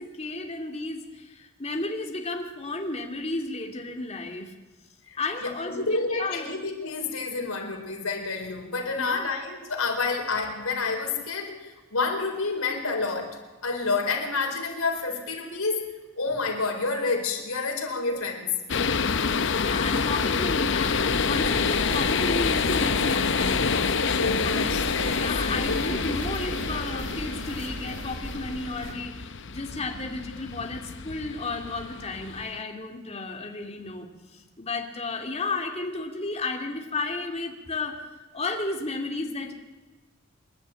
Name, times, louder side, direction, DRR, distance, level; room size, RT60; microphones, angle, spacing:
voice 1, 0.0-4.5 5.2-6.5 8.9-9.3 19.5-23.6 24.5-24.7 25.1-29.2 29.5-38.0 38.3-39.5, left 3 dB, 30° left, 3 dB, 2.4 m, -33 dB
voice 2, 5.1-13.4 13.6-15.9 16.2-18.6 24.2-26.0, left 4 dB, 85° left, 3 dB, 4.3 m, -29 dB
sound 1, 18.7-32.6, left 5 dB, 55° left, 0.7 m, -27 dB
sound 2, 20.8-28.9, right 1 dB, 75° right, 1.9 m, -36 dB
27.0 x 11.5 x 9.0 m, 1.2 s
head